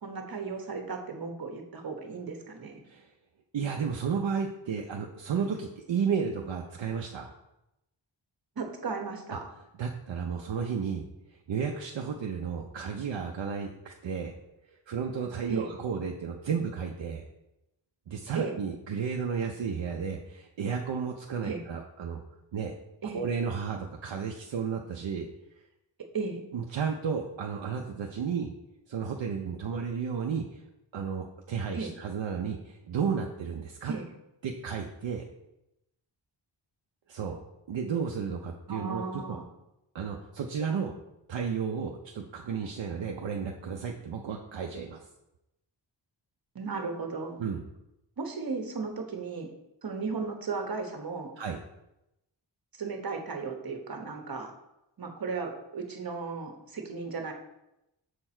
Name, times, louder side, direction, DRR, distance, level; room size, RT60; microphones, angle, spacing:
voice 1, 0.0-2.8 8.6-9.5 15.5-15.7 18.3-18.6 21.4-21.6 23.0-23.2 26.1-26.4 31.7-31.9 33.9-34.1 38.7-39.4 46.5-47.4 48.2-49.5 49.8-51.3 52.8-54.5 55.0-57.3, right 4 dB, 50° right, 4 dB, 1.2 m, -35 dB
voice 2, 3.5-7.3 9.8-11.1 11.5-14.3 14.9-17.2 18.1-22.2 22.5-22.7 23.1-25.3 26.5-28.5 28.9-30.6 30.9-33.9 34.4-35.2 37.1-37.4 37.7-39.4 39.9-40.9 41.3-45.0 47.4-47.6 51.4-51.6, right 6 dB, 70° right, 1 dB, 0.7 m, -33 dB
6.7 x 4.6 x 4.4 m, 0.89 s
wide cardioid pair, 80°, 46 cm